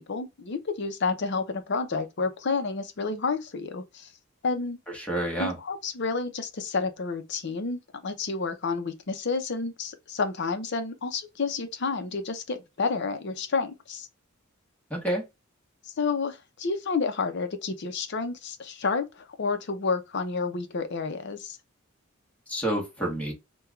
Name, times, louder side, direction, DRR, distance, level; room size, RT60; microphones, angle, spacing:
voice 1, 0.1-4.1 4.4-4.8 5.4-14.1 15.9-21.6, left 4 dB, 55° left, 0.6 m, -30 dB
voice 2, 4.9-5.6 14.9-15.3 22.5-23.3, right 1 dB, 5° left, 1.2 m, -28 dB
4.4 x 2.3 x 2.4 m
head